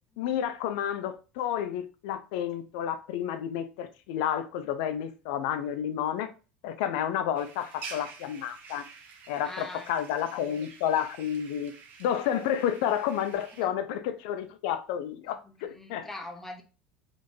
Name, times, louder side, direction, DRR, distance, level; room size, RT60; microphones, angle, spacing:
voice 1, 0.2-6.3 6.6-8.8 9.3-11.7 12.0-16.1, left 10 dB, 60° left, 0.5 m, -30 dB
sound 1, 7.4-13.7, right 5 dB, 45° right, 0.9 m, -48 dB
voice 2, 9.4-9.9 13.6-13.7 15.3-16.6, left 2 dB, 5° left, 0.9 m, -42 dB
4.1 x 3.0 x 2.7 m
figure-of-eight pair, 70°, 5 cm